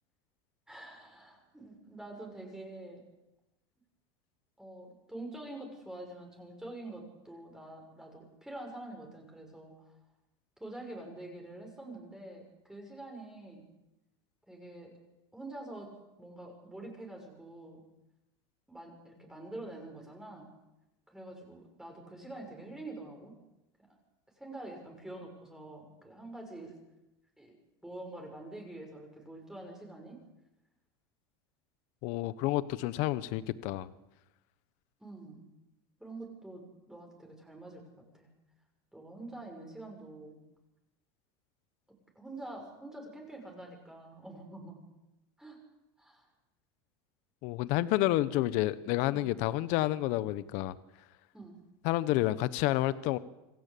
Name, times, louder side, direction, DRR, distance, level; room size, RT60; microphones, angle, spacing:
voice 1, 0.7-3.0 4.6-9.9 10.6-13.7 14.5-14.9 15.3-15.9 16.2-17.8 18.7-20.5 21.1-23.4 23.9-24.0 24.4-26.8 27.4-27.5 27.8-30.2 35.0-35.5 36.0-37.8 38.1-38.3 38.9-40.4 42.1-44.8 45.4-45.6 46.0-46.2 49.1-49.3 51.3-51.6, right 2 dB, 5° right, 1 dB, 6.2 m, -46 dB
voice 2, 32.0-33.9 47.4-50.8 51.8-53.2, left 16 dB, 65° left, 15 dB, 1.1 m, -29 dB
27.0 x 16.0 x 8.6 m, 0.94 s
supercardioid pair, 125°, 14 cm